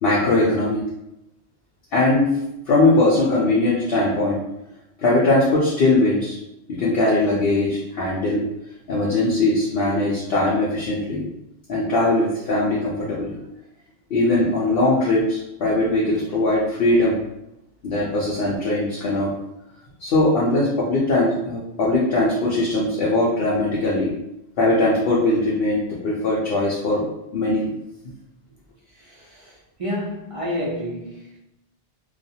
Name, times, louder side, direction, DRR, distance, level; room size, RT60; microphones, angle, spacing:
voice 1, 0.0-0.8 1.9-2.3 2.7-4.4 5.0-6.4 6.7-8.4 8.9-11.2 11.7-13.3 14.1-17.2 17.8-19.3 20.0-24.1 24.6-27.0 27.3-27.7, left 2 dB, 60° left, -6 dB, 0.8 m, -20 dB
voice 2, 29.0-31.4, equal, 55° right, -5 dB, 0.3 m, -30 dB
2.4 x 2.4 x 2.7 m, 0.86 s
omnidirectional pair, 1.2 m